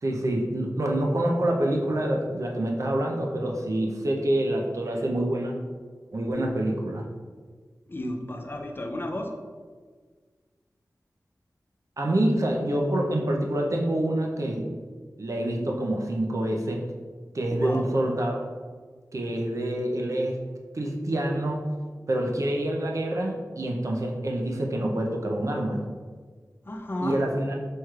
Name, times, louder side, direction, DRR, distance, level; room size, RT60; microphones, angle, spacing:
voice 1, 0.0-5.6 6.1-7.1 12.0-14.7 15.2-16.9 17.3-18.4 19.1-20.4 20.7-21.7 22.1-25.8 27.0-27.5, right 1 dB, 50° right, 0 dB, 0.6 m, -26 dB
voice 2, 7.9-9.3 17.5-17.9 26.6-27.2, left 1 dB, 35° left, 3 dB, 0.5 m, -33 dB
4.4 x 3.1 x 2.4 m, 1.5 s
wide cardioid pair, 60°, 7 cm